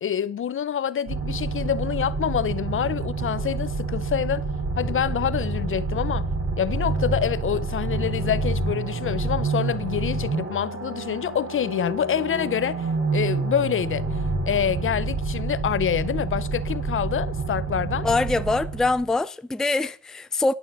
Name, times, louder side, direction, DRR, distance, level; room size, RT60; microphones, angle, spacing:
voice 1, 0.0-4.4 4.8-6.3 6.6-12.8 13.1-14.1 14.5-18.1, left 9 dB, 45° left, 0.6 m, -26 dB
sound 1, 1.1-19.1, right 3 dB, 45° right, 4.6 m, -28 dB
voice 2, 18.0-20.6, left 3 dB, ahead, 0.4 m, -24 dB
11.0 x 6.4 x 6.8 m
cardioid pair, 90°, 30 cm